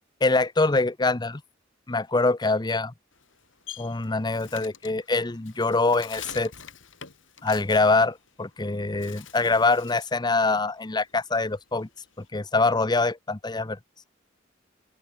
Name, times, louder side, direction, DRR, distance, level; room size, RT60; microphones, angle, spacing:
voice 1, 0.2-1.4 1.9-2.9 3.8-6.5 7.4-11.9 12.2-13.8, left 3 dB, 20° left, 0.8 m, -24 dB
Bird, 3.1-8.6 8.9-10.2 10.5-12.3, left 8 dB, 75° left, 4.6 m, -45 dB
open air
head